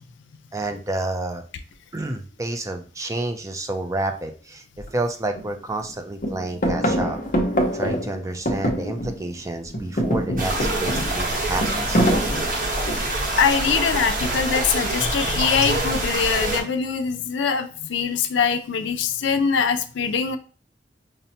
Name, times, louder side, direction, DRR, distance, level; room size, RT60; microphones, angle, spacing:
voice 1, 0.5-1.4 1.9-4.6 4.9-7.2 7.7-12.0, right 2 dB, 15° right, 6 dB, 0.4 m, -29 dB
sound 1, 4.8-4.9 5.3-5.9 6.2-9.4 9.6-13.3 14.2-14.7, equal, 45° left, 0.7 m, -25 dB
sound 2, 10.4-16.6, right 2 dB, 50° right, 0.9 m, -25 dB
voice 2, 13.4-20.4, left 6 dB, 70° left, 9 dB, 0.4 m, -23 dB
5.2 x 2.1 x 2.8 m, 0.39 s
head